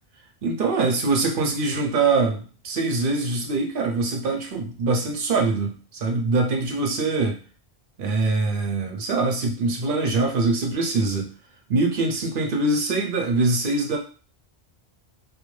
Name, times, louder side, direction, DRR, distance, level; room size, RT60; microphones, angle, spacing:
voice 1, 0.4-7.4 8.0-11.3 11.7-14.0, right 3 dB, 65° right, 2 dB, 0.7 m, -23 dB
2.5 x 2.1 x 3.1 m, 0.37 s
omnidirectional pair, 1.0 m